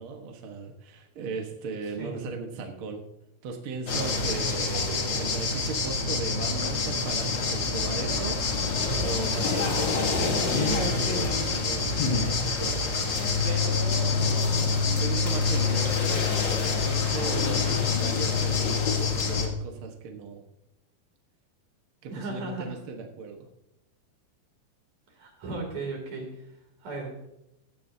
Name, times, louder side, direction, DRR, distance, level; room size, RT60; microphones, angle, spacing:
voice 1, 0.0-3.0 3.4-8.4 9.0-12.4 13.4-14.2 15.0-20.4 22.0-23.5, right 4 dB, 75° right, 2 dB, 1.2 m, -37 dB
sound 1, 3.9-19.5, left 4 dB, 60° left, 1.1 m, -26 dB
voice 2, 22.1-22.7 25.2-26.3 26.8-27.1, right 3 dB, 45° right, 1 dB, 4.0 m, -35 dB
16.0 x 12.5 x 2.8 m, 0.85 s
omnidirectional pair, 4.7 m